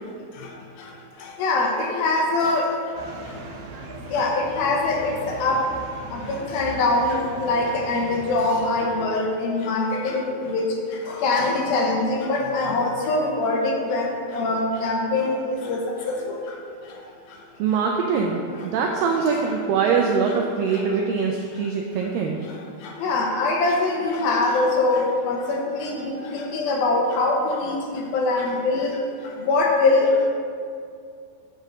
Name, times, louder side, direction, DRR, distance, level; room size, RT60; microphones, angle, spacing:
voice 1, 1.4-2.7 4.1-5.1 5.4-5.6 6.1-10.7 11.2-15.8 23.0-28.9 29.5-30.1, left 2 dB, 75° left, 0 dB, 2.4 m, -23 dB
sound 1, 3.0-9.2, right 2 dB, 70° right, 2.4 m, -39 dB
voice 2, 17.6-22.4, right 5 dB, 90° right, 1 dB, 2.0 m, -23 dB
7.8 x 5.7 x 6.2 m, 2.3 s
omnidirectional pair, 4.7 m